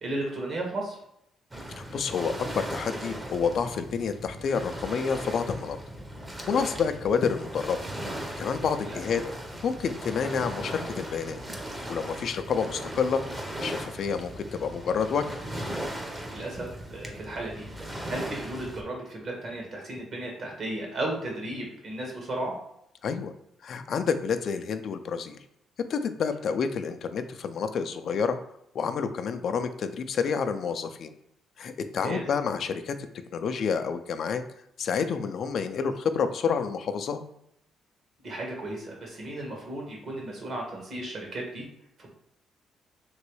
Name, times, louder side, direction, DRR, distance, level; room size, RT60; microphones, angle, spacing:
voice 1, 0.0-1.0 8.9-9.0 16.3-17.7 18.1-22.5 32.0-32.2 38.2-41.6 42.0-42.1, right 1 dB, 55° right, -1 dB, 1.3 m, -34 dB
Waves surf, 1.5-18.8, right 1 dB, 20° right, 0.7 m, -38 dB
voice 2, 1.8-5.8 6.5-7.8 8.2-9.2 9.6-11.4 11.9-13.2 13.6-15.4 23.0-23.3 23.6-25.4 25.9-28.4 28.7-31.1 31.6-33.0 33.3-34.4 34.8-37.2, left 6 dB, 60° left, 9 dB, 0.3 m, -29 dB
3.1 x 2.9 x 3.1 m, 0.76 s
cardioid pair, 90°, 0 cm